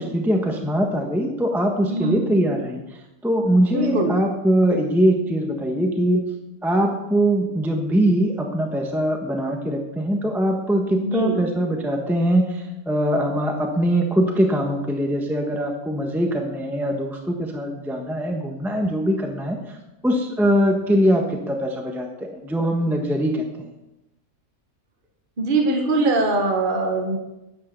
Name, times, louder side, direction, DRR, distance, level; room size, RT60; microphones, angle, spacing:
voice 1, 0.0-2.8 3.2-6.2 6.6-19.8 20.0-23.7, equal, ahead, 2 dB, 1.1 m, -22 dB
voice 2, 1.9-2.3 3.7-4.1 11.0-11.4 25.4-27.2, right 2 dB, 35° right, 2 dB, 1.5 m, -22 dB
10.5 x 8.6 x 7.0 m, 0.95 s
omnidirectional pair, 1.7 m